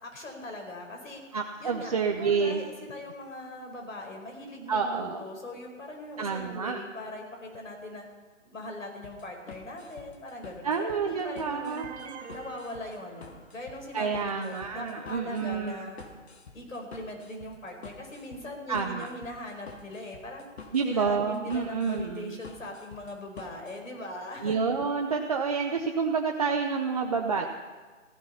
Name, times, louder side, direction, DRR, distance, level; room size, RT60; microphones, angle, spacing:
voice 1, 0.0-1.2 1.6-8.1 8.5-11.9 12.3-16.0 16.5-20.5 20.8-24.6, left 1 dB, 90° left, 1 dB, 5.0 m, -40 dB
voice 2, 1.3-2.6 4.7-5.2 6.2-6.8 10.6-11.9 13.9-15.8 18.7-19.1 20.7-22.4 24.4-27.5, right 5 dB, 30° right, 2 dB, 0.7 m, -28 dB
sound 1, 9.0-23.8, left 4 dB, 55° left, 2.3 m, -48 dB
sound 2, 11.8-13.9, right 6 dB, 55° right, 2.2 m, -46 dB
15.0 x 13.5 x 5.7 m, 1.4 s
hypercardioid pair, 160°, 38 cm